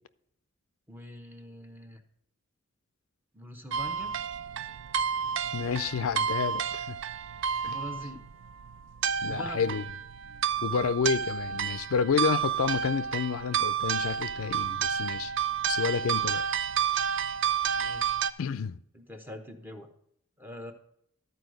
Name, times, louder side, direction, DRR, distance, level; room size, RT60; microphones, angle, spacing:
voice 1, 0.9-2.0 3.3-4.1 7.6-8.2 9.2-9.9 17.8-18.2 18.9-19.9 20.4-20.7, left 1 dB, 10° right, 0.9 m, -43 dB
sound 1, 3.7-18.3, right 8 dB, 60° right, 0.4 m, -30 dB
voice 2, 5.5-7.0 7.6-7.8 9.2-9.8 10.6-15.3 15.7-16.4 18.4-18.8, left 6 dB, 85° left, 0.4 m, -30 dB
12.5 x 4.7 x 6.4 m
head